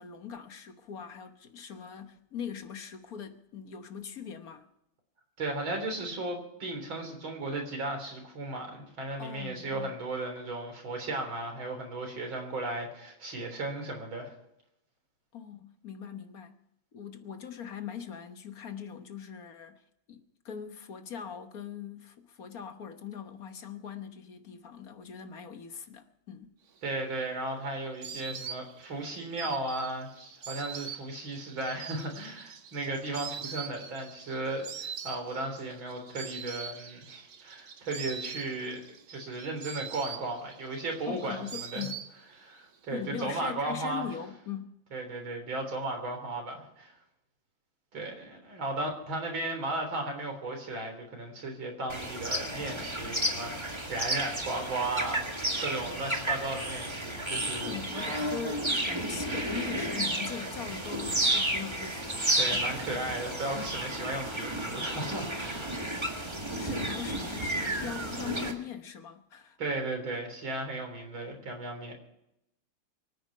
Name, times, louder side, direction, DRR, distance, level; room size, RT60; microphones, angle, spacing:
voice 1, 0.0-4.7 9.2-10.0 15.3-16.6 16.9-19.8 20.1-26.5 41.1-42.0 42.9-44.7 57.7-62.3 62.5-62.8 66.6-69.6, left 8 dB, 50° left, 1.4 m, -41 dB
voice 2, 5.4-14.3 26.8-41.9 42.4-44.1 44.9-46.9 47.9-55.2 55.6-57.8 62.4-65.7 69.6-71.9, right 2 dB, 70° right, 4.4 m, -35 dB
Insect, 26.9-42.6 42.8-43.6, right 7 dB, 50° right, 0.9 m, -43 dB
sound 1, 51.9-68.5, right 1 dB, 15° right, 1.5 m, -32 dB
24.0 x 9.4 x 5.6 m
omnidirectional pair, 2.2 m